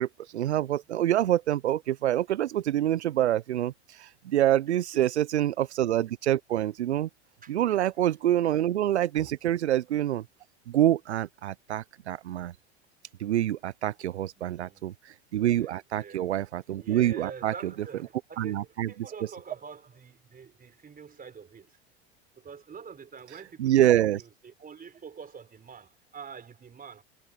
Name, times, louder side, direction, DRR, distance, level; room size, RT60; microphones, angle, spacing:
voice 1, 0.0-7.1 7.5-10.3 10.7-12.5 13.2-17.5 18.4-19.1 23.6-24.2, right 12 dB, 90° right, 0.5 m, -26 dB
voice 2, 4.7-5.0 7.4-7.6 9.1-9.3 14.2-14.9 15.4-16.2 16.8-21.8 22.3-27.0, right 6 dB, 25° right, 4.8 m, -46 dB
hypercardioid pair, 80°, 33 cm